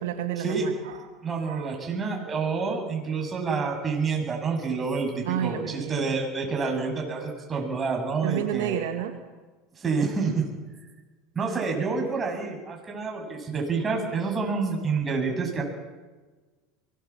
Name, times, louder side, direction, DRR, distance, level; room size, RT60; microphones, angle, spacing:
voice 1, 0.0-1.1 1.5-1.7 5.3-6.2 6.6-6.7 8.2-9.1, right 11 dB, 75° right, 5 dB, 2.0 m, -31 dB
voice 2, 1.2-8.8 9.8-10.4 11.3-15.6, right 4 dB, 25° right, 2 dB, 7.9 m, -28 dB
23.5 x 20.0 x 7.4 m, 1.3 s
hypercardioid pair, 90°, 0 cm